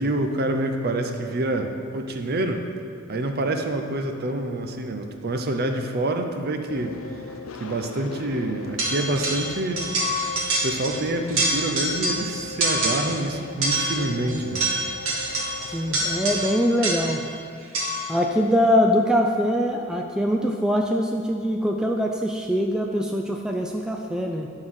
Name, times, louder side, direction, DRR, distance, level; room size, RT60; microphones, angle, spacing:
voice 1, 0.0-2.7 3.1-7.2 7.6-9.9 10.6-14.7, right 1 dB, 45° right, 5 dB, 0.6 m, -27 dB
sound 1, 6.7-16.5, left 4 dB, 70° left, 0.5 m, -39 dB
sound 2, 8.8-9.5 9.8-11.0 11.3-12.3 12.6-13.2 13.6-17.2 17.7-18.1, right 1 dB, 70° right, 1.7 m, -26 dB
voice 2, 15.7-17.2 18.1-24.5, equal, 5° right, 1 dB, 0.3 m, -23 dB
10.5 x 3.8 x 6.2 m, 2.6 s
head